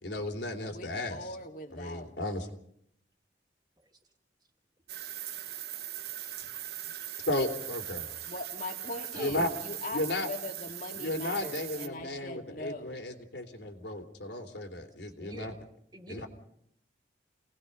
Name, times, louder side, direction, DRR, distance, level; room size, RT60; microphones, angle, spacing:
voice 1, 0.0-1.4 1.7-2.5 7.3-8.1 9.1-9.5 9.9-10.3 10.9-15.5 16.1-16.3, left 1 dB, 80° left, 4 dB, 3.4 m, -34 dB
voice 2, 0.7-2.1 8.3-12.9, left 2 dB, 50° left, 4 dB, 2.5 m, -41 dB
sound 1, 4.9-11.9, right 11 dB, 60° right, 1.3 m, -40 dB
voice 3, 6.0-6.5 6.8-7.1 9.0-9.4 15.2-15.6 15.9-16.3, right 1 dB, 25° right, 4 dB, 2.2 m, -49 dB
29.0 x 19.0 x 5.4 m, 0.71 s
head